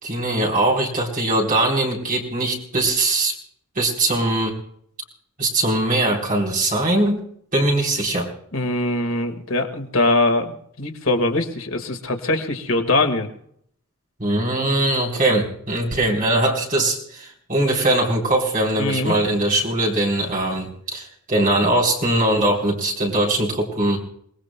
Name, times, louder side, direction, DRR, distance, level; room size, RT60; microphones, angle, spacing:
voice 1, 0.0-3.3 3.8-4.5 5.4-7.2 7.5-8.3 14.2-24.0, right 1 dB, 40° right, -1 dB, 3.8 m, -21 dB
voice 2, 8.5-13.3 18.8-19.1, left 2 dB, 65° left, 4 dB, 1.6 m, -22 dB
29.0 x 19.5 x 2.2 m, 0.68 s
head